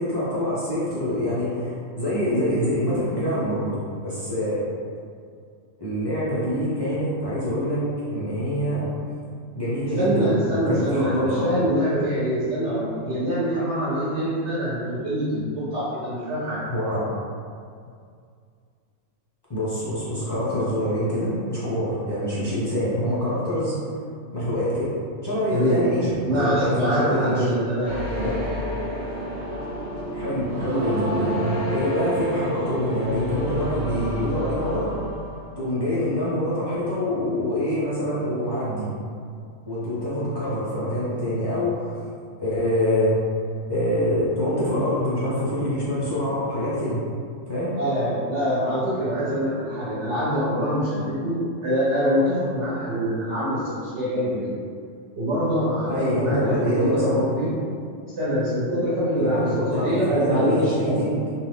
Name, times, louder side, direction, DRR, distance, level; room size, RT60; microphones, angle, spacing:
voice 1, 0.0-3.8 4.0-4.6 5.8-7.8 8.1-8.9 9.5-11.5 16.7-17.1 19.5-23.7 24.3-24.9 25.2-27.5 28.1-28.4 30.1-34.9 35.6-38.9 39.7-41.9 42.4-43.2 43.7-47.0 47.5-47.7 55.9-57.2 59.2-61.2, equal, 30° left, -10 dB, 0.4 m, -25 dB
voice 2, 10.0-16.6 25.5-25.8 26.2-28.0 47.8-54.5 55.1-57.5 58.2-61.0, equal, 65° right, -10 dB, 1.0 m, -24 dB
sound 1, 27.8-35.7, equal, 25° right, 0.6 m, -30 dB
2.8 x 2.3 x 3.4 m, 2.2 s
omnidirectional pair, 1.4 m